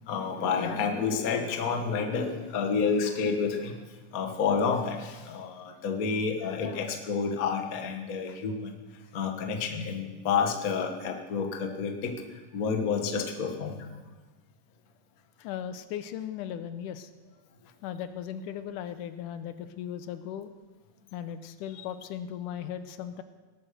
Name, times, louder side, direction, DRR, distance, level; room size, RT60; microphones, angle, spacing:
voice 1, 0.0-3.8 4.1-8.7 9.1-12.2 12.5-13.9 21.7-21.8, left 5 dB, 60° left, 3 dB, 0.9 m, -29 dB
voice 2, 15.4-17.1 17.8-20.5 21.1-23.2, left 9 dB, 80° left, 11 dB, 2.1 m, -37 dB
18.5 x 8.8 x 6.6 m, 1.3 s
omnidirectional pair, 3.9 m